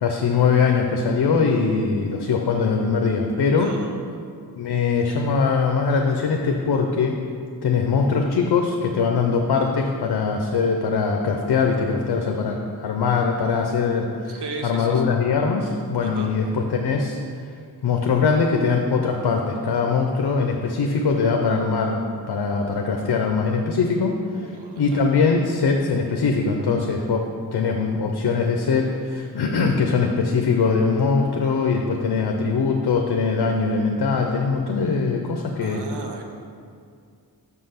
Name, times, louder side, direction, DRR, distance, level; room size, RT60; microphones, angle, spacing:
voice 1, 0.0-3.7 4.6-7.2 7.6-17.2 17.8-24.5 24.8-27.2 27.5-35.9, left 5 dB, 85° left, 2 dB, 0.6 m, -22 dB
voice 2, 3.5-4.0 14.3-15.2 16.0-16.3 24.4-25.0 35.6-36.2, right 4 dB, 85° right, 3 dB, 0.9 m, -36 dB
6.1 x 5.6 x 5.6 m, 2.3 s
wide cardioid pair, 95°, 39 cm